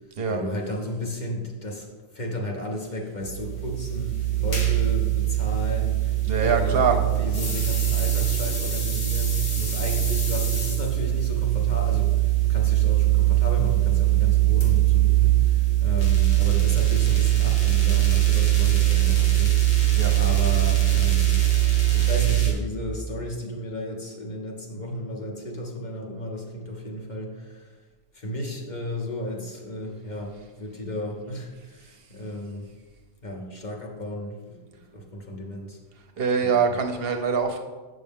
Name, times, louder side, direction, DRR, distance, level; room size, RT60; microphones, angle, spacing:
voice 1, 0.3-1.9 2.1-12.1 12.5-21.4 21.9-27.7 28.1-32.7 33.2-34.6 34.9-35.8 36.4-36.7, left 1 dB, 45° left, 0 dB, 1.1 m, -34 dB
sound 1, 3.2-22.5, right 14 dB, 85° left, 1.6 m, -21 dB
voice 2, 6.3-6.9 19.9-20.1 36.2-37.6, right 5 dB, 65° right, 4 dB, 0.9 m, -23 dB
8.0 x 6.1 x 3.6 m, 1.3 s
omnidirectional pair, 1.1 m